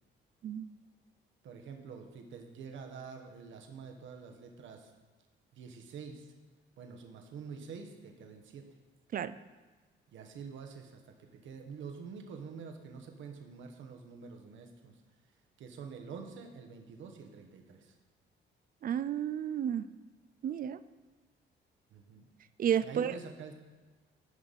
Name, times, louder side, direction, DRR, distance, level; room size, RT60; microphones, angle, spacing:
voice 1, 1.4-4.9 5.5-6.3 6.8-8.7 10.1-15.0 15.6-17.9 21.9-22.3 22.8-23.5, right 5 dB, 75° right, 4 dB, 1.1 m, -47 dB
voice 2, 18.8-19.9 20.4-20.8 22.6-23.1, right 9 dB, 45° right, 14 dB, 0.4 m, -31 dB
9.5 x 5.3 x 4.0 m, 1.3 s
cardioid pair, 90°, 20 cm